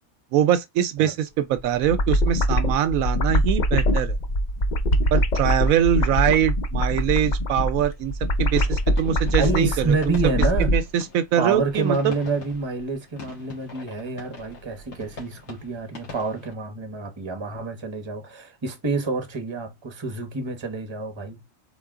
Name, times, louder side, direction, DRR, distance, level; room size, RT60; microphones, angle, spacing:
voice 1, 0.3-4.2 5.1-8.1 8.4-10.2 10.7-12.1, right 10 dB, 80° right, 1.0 m, -23 dB
sound 1, 1.6-10.8, equal, 45° left, 0.6 m, -23 dB
sound 2, 7.9-16.5, left 3 dB, 65° left, 2.1 m, -43 dB
voice 2, 9.3-10.7 11.4-21.4, right 3 dB, 25° right, 0.9 m, -28 dB
3.8 x 3.7 x 3.6 m
omnidirectional pair, 1.4 m